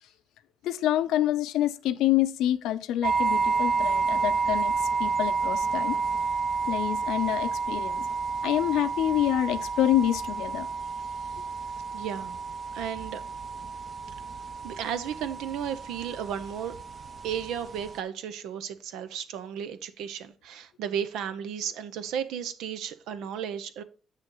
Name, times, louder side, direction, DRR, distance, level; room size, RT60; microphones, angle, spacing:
voice 1, 0.6-4.7 5.0-6.0 6.7-8.0 8.4-10.7, left 12 dB, 90° left, 0.6 m, -27 dB
sound 1, 3.0-18.0, right 4 dB, 40° right, 0.8 m, -30 dB
voice 2, 11.9-12.4 12.7-13.2 14.6-16.7 17.2-23.8, right 8 dB, 90° right, 0.8 m, -34 dB
7.5 x 6.4 x 3.9 m
cardioid pair, 90°, 0 cm